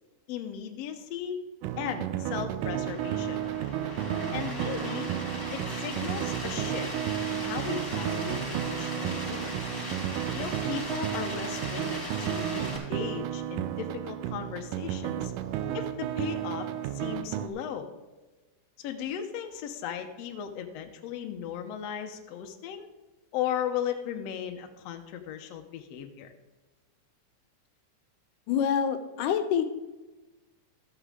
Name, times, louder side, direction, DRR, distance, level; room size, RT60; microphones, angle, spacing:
voice 1, 0.3-1.4 1.8-3.4 4.3-5.1 5.5-7.0 7.3-9.5 10.3-15.3 15.7-16.7 16.9-17.9 18.8-22.9 23.3-26.3, left 9 dB, 70° left, 5 dB, 1.7 m, -36 dB
sound 1, 1.6-17.5, right 11 dB, 85° right, 2.2 m, -33 dB
sound 2, 2.8-12.8, left 1 dB, 20° left, 2.9 m, -38 dB
voice 2, 28.5-29.7, left 8 dB, 85° left, 9 dB, 2.4 m, -26 dB
13.5 x 8.7 x 3.7 m, 1.2 s
omnidirectional pair, 3.6 m